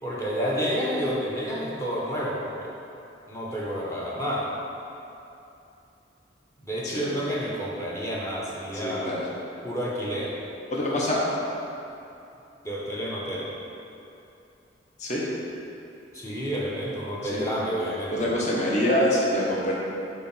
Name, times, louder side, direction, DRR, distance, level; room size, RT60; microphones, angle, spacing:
voice 1, 0.0-2.7 3.3-4.5 6.6-9.1 9.6-10.3 10.8-11.0 12.6-13.5 16.1-18.4, equal, 15° left, -6 dB, 1.0 m, -30 dB
voice 2, 8.8-9.2 10.7-11.2 15.0-15.2 17.3-17.4 18.1-19.7, left 1 dB, 40° left, -4 dB, 0.9 m, -25 dB
4.9 x 4.8 x 5.5 m, 2.8 s
head